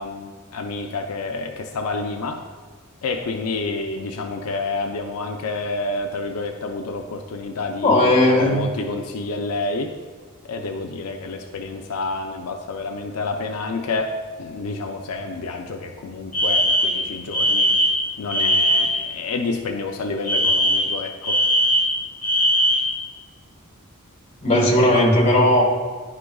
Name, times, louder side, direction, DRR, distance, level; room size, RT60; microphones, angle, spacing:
voice 1, 0.0-2.4 3.0-9.9 10.5-17.7 18.2-21.4, left 3 dB, 85° left, 3 dB, 0.5 m, -29 dB
voice 2, 7.8-8.6 24.4-25.6, left 1 dB, 30° left, -3 dB, 1.6 m, -16 dB
Alarm, 16.3-19.1 20.3-23.0, equal, 5° left, 1.8 m, -20 dB
10.5 x 4.9 x 2.3 m, 1.5 s
head